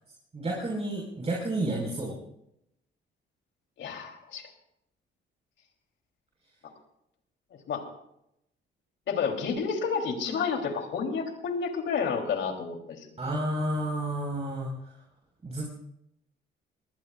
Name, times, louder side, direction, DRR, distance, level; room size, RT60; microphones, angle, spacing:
voice 1, 0.3-2.2 13.2-14.7 15.4-15.7, right 1 dB, 30° right, -2 dB, 4.9 m, -31 dB
voice 2, 3.8-4.5 7.7-7.8 9.1-13.1, left 5 dB, 70° left, 3 dB, 3.4 m, -30 dB
23.0 x 19.5 x 2.5 m, 0.79 s
cardioid pair, 90°, 20 cm